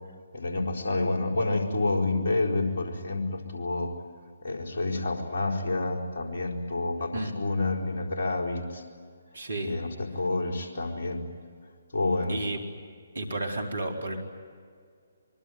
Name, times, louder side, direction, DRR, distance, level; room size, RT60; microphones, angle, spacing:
voice 1, 0.3-3.9 4.4-8.8 9.6-11.2 11.9-12.4, left 2 dB, 50° left, 0 dB, 4.5 m, -29 dB
voice 2, 9.3-9.8 12.3-12.6 13.1-14.2, right 2 dB, 70° right, 3 dB, 4.2 m, -32 dB
25.0 x 23.5 x 9.4 m, 2.1 s
figure-of-eight pair, 135°, 0 cm